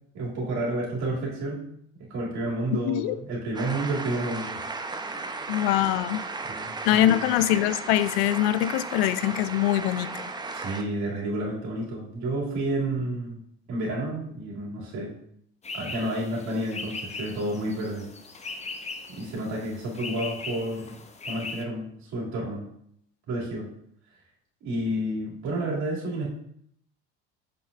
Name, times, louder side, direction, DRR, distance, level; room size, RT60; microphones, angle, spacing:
voice 1, 0.1-1.6 2.0-4.6 6.5-7.3 10.5-13.4 13.7-15.1 15.7-18.1 19.1-21.0 21.3-22.7 23.3-23.7 24.6-26.3, right 1 dB, 60° right, -4 dB, 2.6 m, -30 dB
voice 2, 2.8-3.2 5.5-6.2 6.9-10.1, left 13 dB, 75° left, 14 dB, 0.5 m, -23 dB
sound 1, 3.5-10.8, right 3 dB, 15° right, 0.6 m, -35 dB
sound 2, 15.6-21.6, left 3 dB, 20° left, 0.8 m, -39 dB
6.9 x 5.7 x 2.5 m, 0.69 s
hypercardioid pair, 70°, 32 cm